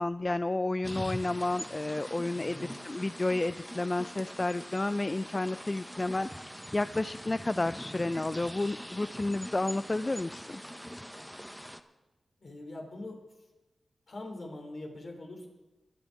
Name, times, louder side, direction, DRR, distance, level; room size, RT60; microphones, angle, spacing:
voice 1, 0.0-10.6, left 2 dB, 30° left, 13 dB, 0.3 m, -31 dB
sound 1, 0.8-11.8, equal, ahead, 0.8 m, -43 dB
voice 2, 2.3-2.8 12.4-13.2 14.1-15.5, left 2 dB, 60° left, 2 dB, 3.1 m, -43 dB
22.0 x 8.0 x 4.6 m, 1.1 s
cardioid pair, 50°, 0 cm